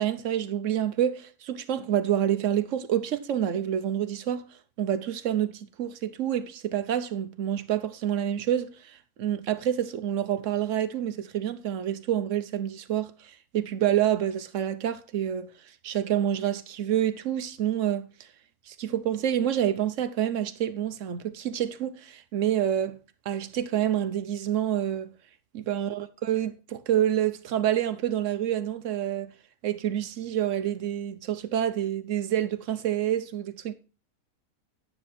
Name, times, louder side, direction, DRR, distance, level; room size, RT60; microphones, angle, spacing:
voice 1, 0.0-4.5 4.8-15.5 15.8-18.3 18.7-23.0 23.3-25.1 25.5-29.3 29.6-33.7, right 10 dB, 60° right, 1.0 m, -28 dB
9.7 x 7.1 x 4.2 m
omnidirectional pair, 1.6 m